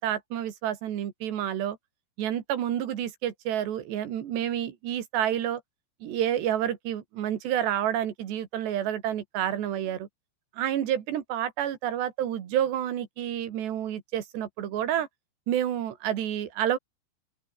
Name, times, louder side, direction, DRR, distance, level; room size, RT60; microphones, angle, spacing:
voice 1, 0.0-1.8 2.2-5.6 6.0-10.1 10.5-15.1 15.5-16.8, right 10 dB, 70° right, 4.4 m, -29 dB
open air
omnidirectional pair, 5.2 m